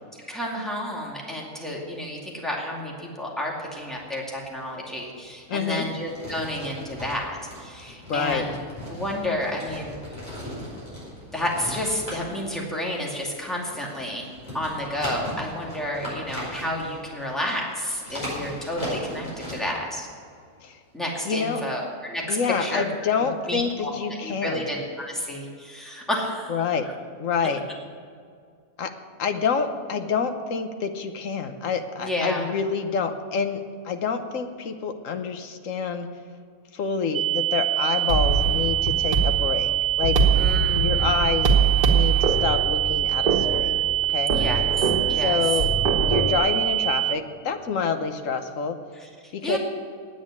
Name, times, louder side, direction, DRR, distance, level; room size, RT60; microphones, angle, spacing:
voice 1, 0.3-8.5 8.9-10.0 11.3-14.3 14.5-20.1 20.9-22.8 23.5-23.9 24.2-26.5 32.0-32.4 40.3-41.3 44.3-45.4 49.0-49.1 49.4-49.6, left 1 dB, ahead, -2 dB, 2.2 m, -30 dB
sound 1, 3.6-4.8 5.1-19.9 20.1-20.2, equal, 25° left, 4.6 m, -38 dB
voice 2, 5.5-5.9 8.1-8.5 20.6-20.8 21.2-21.6 22.3-24.7 26.5-26.9 27.2-27.6 28.8-28.9 29.2-36.1 36.7-39.7 40.0-40.2 40.8-41.5 41.9-44.4 45.2-45.7 46.1-48.8 49.3-49.6, left 5 dB, 65° left, 7 dB, 1.3 m, -27 dB
sound 2, 37.1-47.1, right 14 dB, 65° right, 0.9 m, -24 dB
sound 3, 38.1-46.4, right 4 dB, 85° right, 1.9 m, -24 dB
9.6 x 8.7 x 9.8 m, 2.2 s
omnidirectional pair, 1.6 m